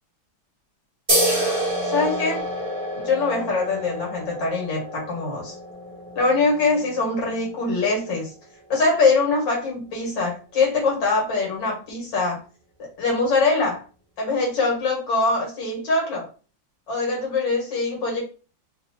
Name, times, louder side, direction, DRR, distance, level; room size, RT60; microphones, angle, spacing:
sound 1, 1.1-8.2, right 1 dB, 20° right, 1.0 m, -28 dB
voice 1, 1.3-2.4 2.9-5.5 6.2-8.3 8.7-12.4 13.0-13.8 14.2-16.2 16.9-18.2, left 3 dB, 70° left, -2 dB, 2.2 m, -23 dB
3.9 x 2.7 x 2.7 m, 0.36 s
omnidirectional pair, 2.1 m